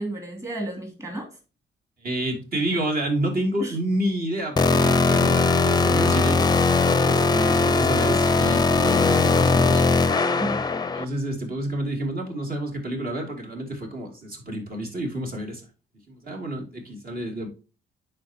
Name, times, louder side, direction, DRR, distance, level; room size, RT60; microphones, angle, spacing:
voice 1, 0.0-1.4 3.6-3.8 6.2-6.3 10.4-10.7, right 1 dB, 15° right, 2.7 m, -33 dB
voice 2, 2.0-6.4 7.0-9.8 10.9-15.7 16.1-17.5, right 1 dB, 50° right, 2.6 m, -29 dB
sound 1, 4.6-11.0, left 3 dB, 20° left, 0.6 m, -20 dB
10.5 x 4.4 x 2.8 m
cardioid pair, 90°, 20 cm